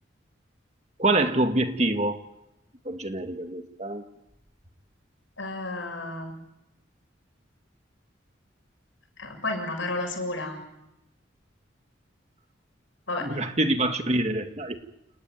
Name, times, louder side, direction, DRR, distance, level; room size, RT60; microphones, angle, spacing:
voice 1, 1.0-2.2 2.9-4.0 13.2-14.8, right 2 dB, 35° right, 6 dB, 2.0 m, -25 dB
voice 2, 5.4-6.3 9.2-10.6 13.1-13.4, left 2 dB, 85° left, 5 dB, 7.3 m, -32 dB
29.0 x 19.0 x 9.3 m, 0.88 s
head